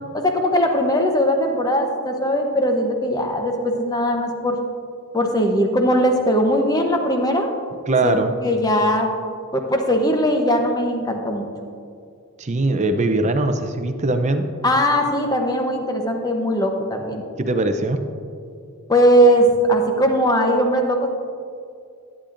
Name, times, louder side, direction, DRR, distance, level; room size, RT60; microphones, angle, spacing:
voice 1, 0.1-4.6 5.1-7.5 8.0-9.1 9.5-11.5 14.6-17.2 18.9-21.1, equal, 15° left, 3 dB, 0.8 m, -19 dB
voice 2, 7.9-8.3 12.4-14.5 17.4-18.0, right 2 dB, 30° right, 7 dB, 0.5 m, -21 dB
11.0 x 10.0 x 2.5 m, 2.4 s
head